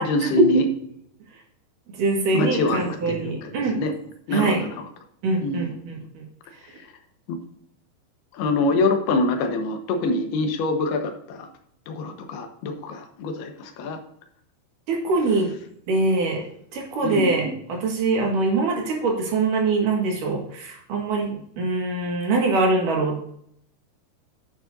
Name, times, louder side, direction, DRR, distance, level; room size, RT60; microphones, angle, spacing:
voice 1, 0.0-0.7 2.3-3.9 4.3-4.9 5.4-5.6 7.3-7.4 8.3-11.5 11.9-14.0 17.0-17.3, left 2 dB, 75° left, 5 dB, 3.0 m, -25 dB
voice 2, 2.0-3.8 4.3-4.6 5.2-6.2 14.9-15.5 15.9-16.4 16.7-23.2, right 3 dB, 60° right, 0 dB, 3.0 m, -23 dB
10.0 x 8.9 x 2.6 m, 0.69 s
omnidirectional pair, 4.7 m